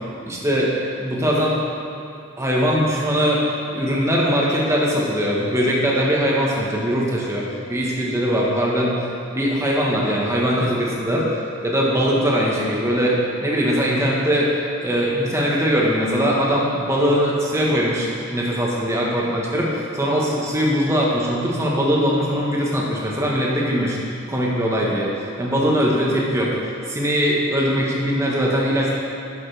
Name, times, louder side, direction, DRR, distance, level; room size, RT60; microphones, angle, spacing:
voice 1, 0.2-1.6 2.4-3.4 3.7-7.4 7.7-9.0 9.3-14.5 14.8-24.0 24.3-25.1 25.4-28.9, equal, 15° right, -4 dB, 1.3 m, -21 dB
11.0 x 6.9 x 3.4 m, 2.5 s
head